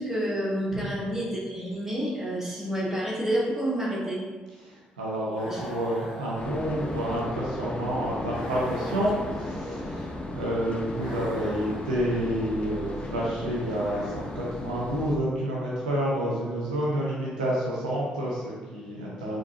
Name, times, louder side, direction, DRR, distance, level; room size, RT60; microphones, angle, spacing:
voice 1, 0.0-4.2 5.5-5.6, right 1 dB, 5° right, -6 dB, 1.3 m, -29 dB
voice 2, 4.6-19.4, right 1 dB, 85° right, -5 dB, 0.5 m, -29 dB
sound 1, 5.3-7.1 8.3-9.8 10.9-12.3 13.7-14.8, left 1 dB, 75° left, 0.6 m, -43 dB
sound 2, 6.4-15.1, left 2 dB, 30° left, 0.5 m, -35 dB
3.8 x 2.6 x 2.5 m, 1.3 s
figure-of-eight pair, 40°, 4 cm